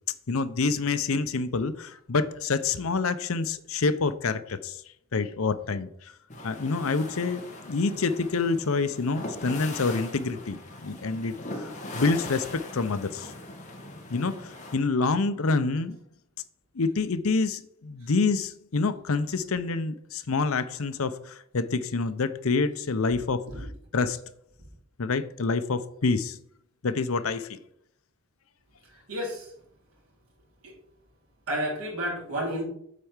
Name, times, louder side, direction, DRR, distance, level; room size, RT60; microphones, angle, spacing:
voice 1, 0.3-4.8 5.1-5.9 6.4-13.3 14.1-16.0 16.8-23.4 23.9-24.2 25.0-26.4 26.8-27.5, left 4 dB, 80° left, 12 dB, 0.7 m, -27 dB
sound 1, 6.3-14.8, left 1 dB, 35° left, 1.8 m, -40 dB
voice 2, 29.1-29.5 30.6-30.7 31.5-32.7, equal, 80° right, -2 dB, 3.5 m, -31 dB
8.4 x 4.6 x 7.2 m, 0.70 s
head